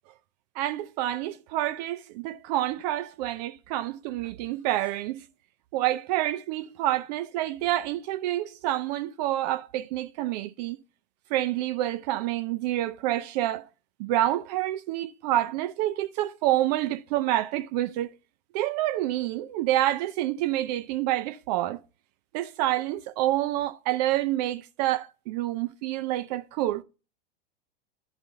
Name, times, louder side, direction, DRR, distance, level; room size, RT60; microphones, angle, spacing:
voice 1, 0.6-5.3 5.7-10.8 11.3-13.7 14.0-18.1 18.5-21.8 22.3-26.8, right 14 dB, 45° right, 0.4 m, -28 dB
11.0 x 4.0 x 5.5 m
hypercardioid pair, 100°, 30 cm